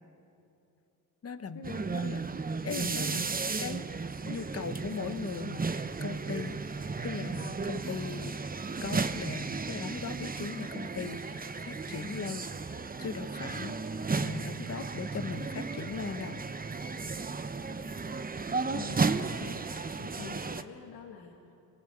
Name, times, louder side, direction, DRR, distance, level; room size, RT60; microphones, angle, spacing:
voice 1, 1.2-2.2 2.6-3.2 3.6-3.9 4.2-8.4 8.8-16.4 18.9-19.1, left 5 dB, 40° left, 10 dB, 1.4 m, -39 dB
sound 1, 1.6-20.6, right 4 dB, 25° right, 0.9 m, -34 dB
voice 2, 20.0-21.5, left 7 dB, 90° left, 1 dB, 2.0 m, -45 dB
26.0 x 19.0 x 8.3 m, 2.7 s
cardioid pair, 85°, 36 cm